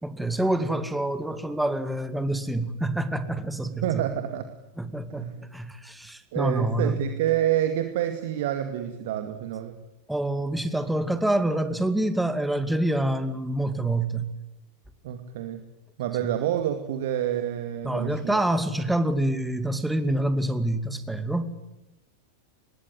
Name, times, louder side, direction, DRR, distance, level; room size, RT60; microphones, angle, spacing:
voice 1, 0.0-4.0 4.8-7.0 10.1-14.3 16.2-16.3 17.8-21.5, right 1 dB, 5° right, 10 dB, 2.5 m, -27 dB
voice 2, 3.8-4.5 5.2-5.5 6.3-9.8 15.0-15.6 16.0-18.4, right 11 dB, 55° right, 8 dB, 2.3 m, -28 dB
25.5 x 21.5 x 9.9 m, 0.95 s
figure-of-eight pair, 90°, 0 cm